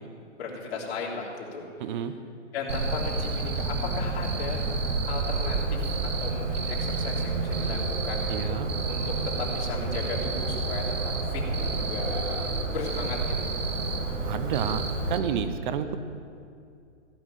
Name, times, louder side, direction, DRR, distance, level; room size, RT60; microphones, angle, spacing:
voice 1, 0.4-1.7 2.5-4.6 5.1-13.5, left 4 dB, 55° left, -4 dB, 3.4 m, -36 dB
voice 2, 1.8-2.1 8.3-8.7 14.2-14.8 15.1-16.0, right 8 dB, 40° right, 10 dB, 0.9 m, -29 dB
Cricket, 2.7-15.2, right 3 dB, 80° right, 2.0 m, -29 dB
15.5 x 6.0 x 9.1 m, 2.4 s
hypercardioid pair, 145°, 38 cm